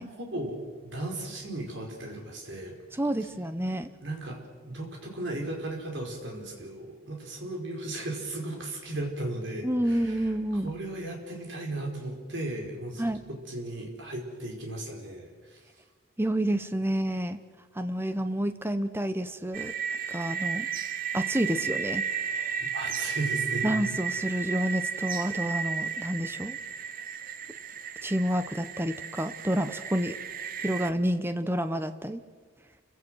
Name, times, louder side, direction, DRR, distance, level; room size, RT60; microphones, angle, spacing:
voice 1, 0.2-2.7 4.0-10.3 10.6-13.0 13.3-15.6 20.3-20.6 22.6-23.7, right 2 dB, 60° right, 0 dB, 4.9 m, -36 dB
voice 2, 3.0-3.9 9.6-10.7 13.0-13.2 16.2-17.4 17.7-19.7 20.1-20.7 21.1-22.5 23.6-26.6 28.0-30.2 30.6-32.2, equal, 10° right, 10 dB, 0.8 m, -29 dB
sound 1, 19.5-30.9, right 7 dB, 40° right, 0.8 m, -33 dB
29.5 x 16.5 x 6.3 m, 1.5 s
head